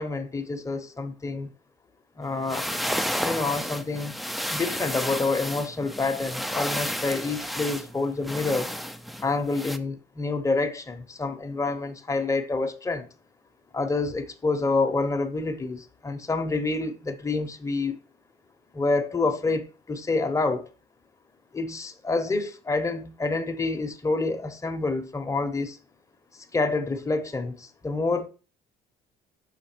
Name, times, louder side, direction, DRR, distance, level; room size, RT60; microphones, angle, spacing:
voice 1, 0.0-1.5 2.2-2.7 3.2-4.1 4.5-8.7 9.2-13.1 13.7-17.9 18.7-20.6 21.5-25.8 26.5-28.3, left 3 dB, 20° left, 0.9 m, -27 dB
sound 1, 2.3-9.8, equal, ahead, 0.5 m, -32 dB
5.8 x 3.7 x 6.0 m
cardioid pair, 110°, 17 cm